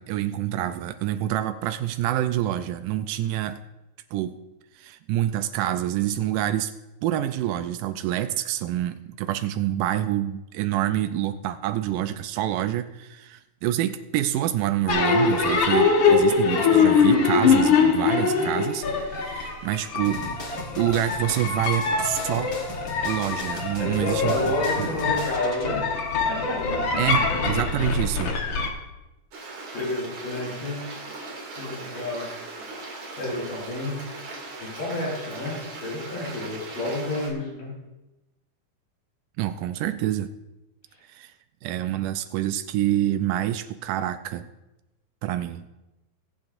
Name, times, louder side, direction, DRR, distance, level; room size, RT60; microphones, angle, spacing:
voice 1, 0.0-3.6 4.1-4.4 4.8-6.7 7.0-20.4 20.8-22.5 23.0-25.0 27.0-28.3 39.4-40.3 41.1-41.3 41.6-44.4 45.2-45.7, right 12 dB, 90° right, 9 dB, 1.8 m, -27 dB
sound 1, 14.9-28.7, left 5 dB, 90° left, 1.0 m, -23 dB
sound 2, 20.0-25.7, left 3 dB, 40° left, 1.4 m, -38 dB
voice 2, 23.8-25.9 26.3-27.0 29.7-30.8 31.6-32.3 33.2-34.3 34.6-37.7, left 2 dB, 65° left, -4 dB, 6.1 m, -30 dB
Stream, 29.3-37.3, right 3 dB, 55° right, 3.7 m, -39 dB
23.0 x 8.6 x 2.6 m, 0.98 s
omnidirectional pair, 4.2 m